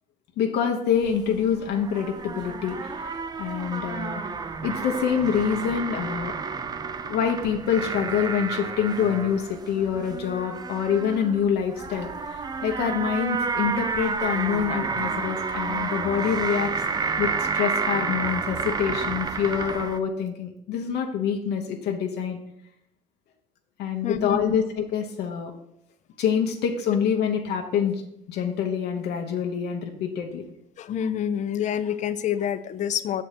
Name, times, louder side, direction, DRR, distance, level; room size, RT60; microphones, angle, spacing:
voice 1, 0.4-4.2 4.6-6.3 7.0-16.7 17.2-22.4 23.8-25.5 26.2-28.0 28.3-30.4, left 7 dB, 75° left, 2 dB, 0.9 m, -26 dB
sound 1, 0.9-20.0, right 5 dB, 25° right, 0.4 m, -30 dB
voice 2, 24.0-24.4 30.8-33.2, left 9 dB, 45° left, 12 dB, 0.4 m, -27 dB
6.7 x 4.3 x 5.0 m, 0.78 s
cardioid pair, 110°, 17 cm